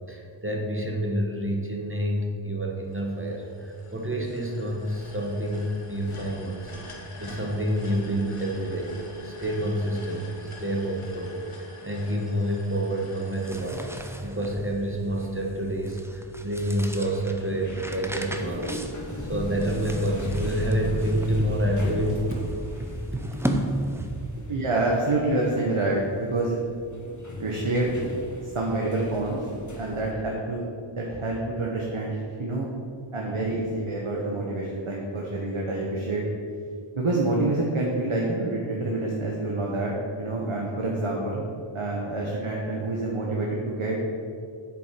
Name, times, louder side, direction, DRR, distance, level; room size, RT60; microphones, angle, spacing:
voice 1, 0.1-8.9 9.2-11.4 11.8-13.8 14.2-18.8 19.3-22.4 22.8-23.6, right 1 dB, 25° right, -1 dB, 1.3 m, -28 dB
sound 1, 2.9-15.0, left 1 dB, 85° left, 1.6 m, -46 dB
sound 2, 13.2-24.4, right 1 dB, 5° right, 0.7 m, -36 dB
sound 3, 17.4-30.1, left 1 dB, 35° left, 1.6 m, -37 dB
voice 2, 24.5-26.6 27.4-27.9 28.4-29.4 29.8-32.7 33.1-36.2 36.9-41.5 41.7-44.0, right 2 dB, 85° right, -3 dB, 1.3 m, -27 dB
7.8 x 7.5 x 5.8 m, 2.3 s
wide cardioid pair, 55°, 49 cm